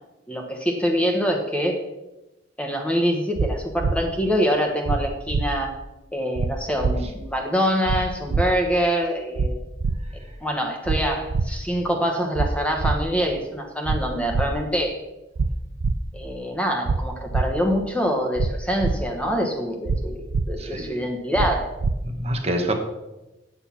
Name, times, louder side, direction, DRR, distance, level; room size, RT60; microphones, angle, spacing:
voice 1, 0.3-1.8 2.6-5.7 6.1-9.6 10.4-15.0 16.1-21.7, equal, 5° left, 2 dB, 1.2 m, -25 dB
sound 1, 3.4-3.5 3.8-3.9 4.9-5.0 5.3-5.4 6.4-6.5 6.8-6.9 7.9-8.0 8.3-8.4 9.4-9.5 9.8-10.0 10.9-11.0 11.3-11.5 12.4-12.5 12.8-12.9 13.9-14.0 14.3-14.5 15.4-15.5 15.8-15.9 16.9-17.0 17.3-17.4 18.4-18.5 18.8-18.9 19.9-20.0 20.3-20.4 21.4-21.5 21.8-21.9, right 4 dB, 85° right, 0.6 m, -22 dB
voice 2, 20.6-21.0 22.0-22.7, right 1 dB, 35° right, 4 dB, 1.3 m, -27 dB
9.0 x 8.2 x 5.8 m, 1.0 s
head